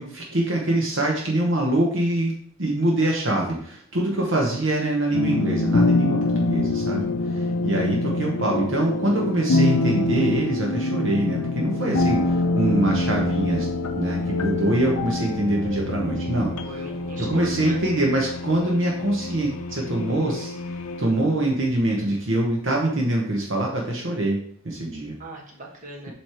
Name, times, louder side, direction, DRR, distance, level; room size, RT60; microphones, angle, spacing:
voice 1, 0.0-2.3 2.6-13.7 13.9-16.5 17.2-20.5 21.0-24.4 24.6-25.2, right 1 dB, 55° right, -1 dB, 1.0 m, -24 dB
sound 1, 5.1-21.7, left 2 dB, 85° left, 0.6 m, -25 dB
voice 2, 16.6-17.8 25.2-26.1, right 2 dB, 35° right, -2 dB, 1.3 m, -38 dB
7.7 x 3.2 x 4.4 m, 0.62 s
head